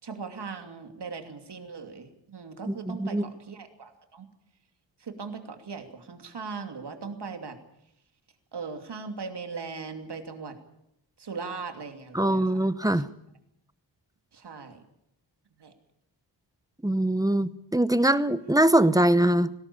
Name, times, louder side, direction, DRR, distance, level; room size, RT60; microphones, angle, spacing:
voice 1, 0.0-4.3 5.0-7.6 8.5-10.6 11.2-12.7 12.9-13.0 14.3-14.8 15.6-15.7, right 5 dB, 65° right, 6 dB, 2.8 m, -39 dB
voice 2, 2.7-3.2 12.1-13.1 16.8-19.5, right 1 dB, 10° right, 15 dB, 0.8 m, -23 dB
19.0 x 18.0 x 8.5 m, 0.79 s
wide cardioid pair, 105°, 44 cm